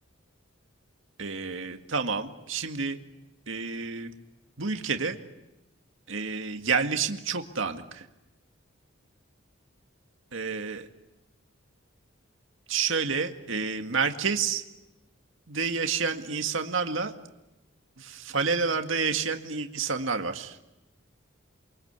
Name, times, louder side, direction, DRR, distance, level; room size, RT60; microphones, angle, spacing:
voice 1, 1.2-3.0 3.5-4.1 4.6-5.2 6.1-8.1 10.3-10.9 12.7-14.6 15.5-17.1 18.0-20.6, right 5 dB, 65° right, 6 dB, 1.9 m, -29 dB
29.0 x 23.5 x 8.2 m, 0.98 s
head